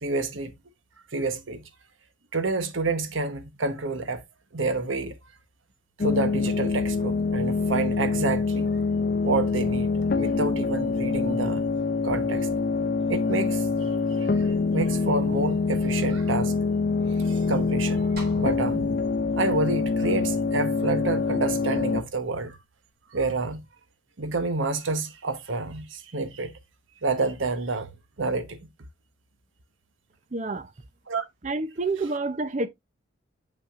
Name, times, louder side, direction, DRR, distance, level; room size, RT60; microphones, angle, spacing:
voice 1, 0.0-0.5 1.1-1.6 2.3-4.2 4.5-5.1 6.0-8.7 9.2-9.9 10.2-11.7 12.0-12.5 13.1-13.7 14.2-14.4 14.7-16.5 17.2-18.1 18.4-18.9 19.3-22.6 23.1-23.6 24.2-26.5 27.0-27.9 28.2-28.6 31.1-31.2, right 3 dB, 80° right, 1.0 m, -28 dB
sound 1, 6.0-22.0, left 4 dB, 45° left, 0.5 m, -25 dB
sound 2, 18.2-22.6, right 3 dB, 55° right, 4.5 m, -46 dB
voice 2, 30.3-30.7 31.4-32.7, right 3 dB, 35° right, 0.6 m, -28 dB
7.0 x 5.6 x 2.4 m
head